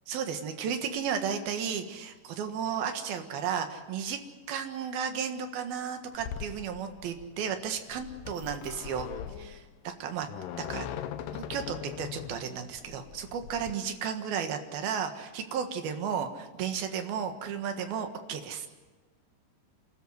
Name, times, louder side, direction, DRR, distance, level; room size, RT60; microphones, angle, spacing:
voice 1, 0.1-4.2 4.5-9.1 9.4-10.3 10.6-10.9 11.3-18.7, right 7 dB, 65° right, 6 dB, 3.2 m, -34 dB
sound 1, 6.1-13.7, left 9 dB, 80° left, 2.0 m, -40 dB
29.0 x 13.5 x 8.0 m, 1.4 s
omnidirectional pair, 5.1 m